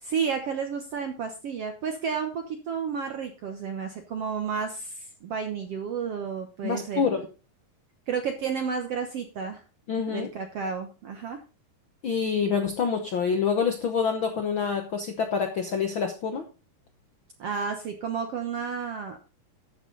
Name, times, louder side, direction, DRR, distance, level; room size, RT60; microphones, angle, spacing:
voice 1, 0.0-7.1 8.1-9.6 10.1-11.4 17.4-19.2, right 6 dB, 60° right, 5 dB, 1.7 m, -31 dB
voice 2, 6.6-7.2 9.9-10.3 12.0-16.4, left 6 dB, 90° left, 6 dB, 1.1 m, -26 dB
13.0 x 8.1 x 4.0 m, 0.32 s
omnidirectional pair, 3.9 m